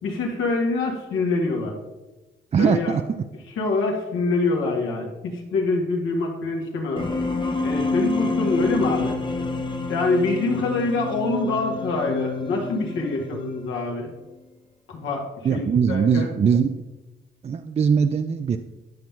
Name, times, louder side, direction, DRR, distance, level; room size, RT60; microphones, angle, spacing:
voice 1, 0.0-1.7 2.6-3.0 3.6-7.1 7.6-9.2 9.9-14.1 14.9-16.3, left 3 dB, 85° left, 0 dB, 1.8 m, -25 dB
voice 2, 2.5-3.2 13.3-13.4 15.4-16.7 17.4-18.6, right 6 dB, 30° right, 8 dB, 0.4 m, -21 dB
sound 1, 7.0-14.0, left 3 dB, 25° left, 0.8 m, -28 dB
10.5 x 5.8 x 3.6 m, 1.1 s
cardioid pair, 90°, 20 cm